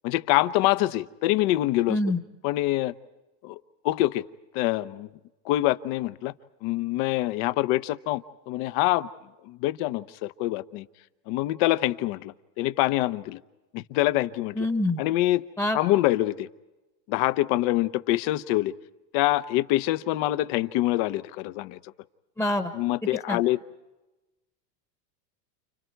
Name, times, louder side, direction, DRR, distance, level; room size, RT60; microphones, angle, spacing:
voice 1, 0.0-2.0 2.4-2.9 3.4-3.6 3.8-4.2 4.5-5.1 5.4-6.3 6.6-9.1 9.5-10.9 11.3-13.4 13.7-14.5 15.0-15.5 15.7-16.5 17.1-18.7 19.1-21.8 22.7-23.6, left 16 dB, 50° left, 14 dB, 0.9 m, -25 dB
voice 2, 1.9-2.2 14.5-15.0 15.6-15.8 22.4-22.7 23.3-23.4, left 1 dB, 5° left, 7 dB, 1.2 m, -25 dB
30.0 x 29.5 x 4.6 m, 1.1 s
supercardioid pair, 130°, 49 cm